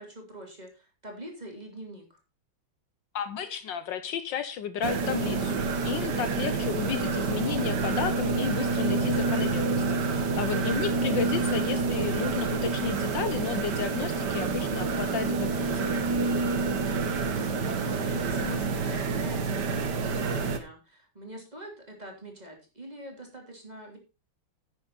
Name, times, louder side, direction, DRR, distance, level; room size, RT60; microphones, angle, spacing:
voice 1, 0.0-2.2 17.2-24.0, right 1 dB, 20° right, 3.1 m, -44 dB
voice 2, 3.1-15.9, left 8 dB, 70° left, 1.4 m, -33 dB
sound 1, 4.8-20.6, right 4 dB, 60° right, 1.8 m, -28 dB
11.0 x 8.8 x 4.0 m
omnidirectional pair, 2.2 m